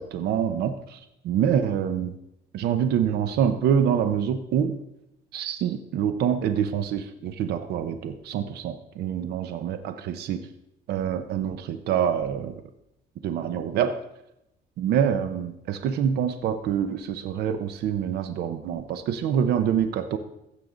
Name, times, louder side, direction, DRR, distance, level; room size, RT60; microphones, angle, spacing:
voice 1, 0.0-2.1 2.5-4.8 5.3-10.4 10.9-12.6 13.2-14.0 14.8-20.2, right 8 dB, 75° right, 9 dB, 0.8 m, -26 dB
15.5 x 6.6 x 3.9 m, 0.85 s
cardioid pair, 110°, 17 cm